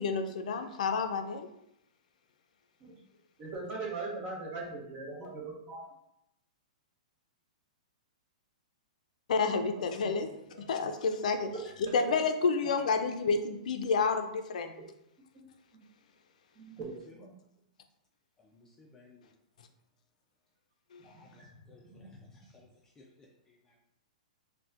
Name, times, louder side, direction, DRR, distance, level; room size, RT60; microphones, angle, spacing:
voice 1, 0.0-1.5 9.3-10.3 10.7-11.5 11.9-14.7 20.9-21.0, left 4 dB, 70° left, 6 dB, 0.4 m, -29 dB
voice 2, 3.4-5.9 10.0-10.1 10.5-10.7 11.5-12.2 15.3-15.4 15.7-15.8 16.6-17.2 21.8-22.2, right 3 dB, 30° right, -1 dB, 0.9 m, -40 dB
voice 3, 16.8-17.3 18.4-19.3 21.0-23.8, left 2 dB, 10° left, -2 dB, 0.4 m, -59 dB
4.0 x 2.1 x 2.4 m, 0.81 s
hypercardioid pair, 150°, 4 cm